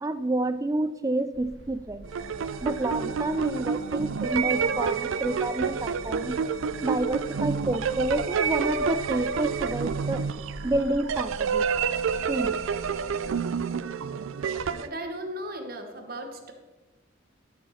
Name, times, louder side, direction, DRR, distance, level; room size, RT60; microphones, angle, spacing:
voice 1, 0.0-2.1 2.6-6.4 6.8-10.2 10.6-11.7 12.3-12.6, right 2 dB, 15° right, 13 dB, 0.3 m, -29 dB
sound 1, 1.3-13.3, right 1 dB, 70° right, 1.0 m, -45 dB
sound 2, 2.0-14.9, right 6 dB, 90° right, 0.4 m, -29 dB
voice 2, 14.7-16.5, right 1 dB, 50° right, 4 dB, 1.2 m, -37 dB
12.0 x 4.8 x 5.7 m, 1.2 s
head